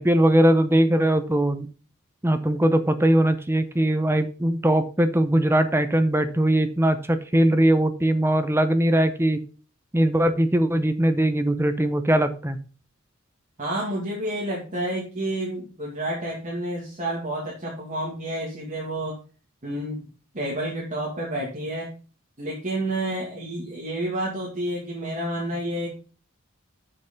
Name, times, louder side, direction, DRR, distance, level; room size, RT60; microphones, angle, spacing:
voice 1, 0.0-1.7 2.2-9.4 9.9-12.6, right 1 dB, 10° right, 9 dB, 0.8 m, -20 dB
voice 2, 13.6-19.2 19.6-20.0 20.3-21.9 22.4-25.9, right 1 dB, 35° right, -4 dB, 2.3 m, -29 dB
7.0 x 6.6 x 5.3 m, 0.36 s
head